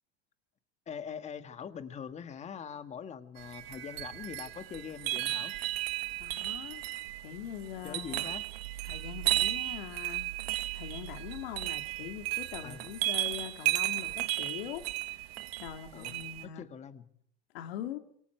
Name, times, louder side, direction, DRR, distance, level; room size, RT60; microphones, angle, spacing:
voice 1, 0.9-5.5 7.8-8.5 12.6-12.8 15.9-16.1 16.4-17.1, left 7 dB, 25° left, 10 dB, 1.7 m, -43 dB
sound 1, 3.4-16.4, right 17 dB, 90° right, 1.5 m, -34 dB
voice 2, 6.2-6.8 7.2-8.2 8.8-10.3 10.7-15.3 15.6-16.6 17.5-18.0, left 11 dB, 90° left, 7 dB, 2.5 m, -42 dB
26.5 x 23.5 x 4.6 m, 0.65 s
supercardioid pair, 155°, 29 cm